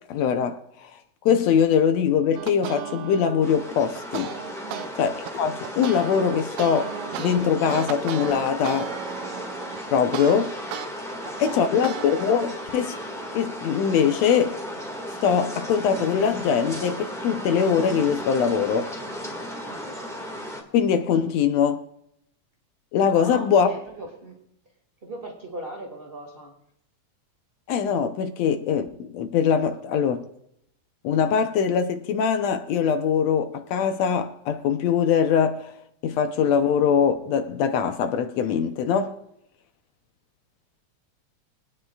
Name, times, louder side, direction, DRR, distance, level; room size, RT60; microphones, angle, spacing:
voice 1, 0.1-0.9 1.3-4.4 5.0-8.9 9.9-10.5 11.4-13.0 13.3-14.6 15.2-18.9 20.7-21.8 22.9-23.7 27.7-30.2 31.0-35.7 36.0-39.2, left 7 dB, 70° left, 1.9 m, -22 dB
sound 1, 2.3-4.9 5.3-10.9 11.3-12.3, right 10 dB, 80° right, 2.0 m, -35 dB
sound 2, 3.4-20.6, equal, ahead, 1.0 m, -35 dB
voice 2, 11.1-11.9 19.7-19.9 23.1-24.4 25.0-26.5, right 1 dB, 20° right, 1.8 m, -39 dB
24.0 x 9.6 x 2.4 m
omnidirectional pair, 3.4 m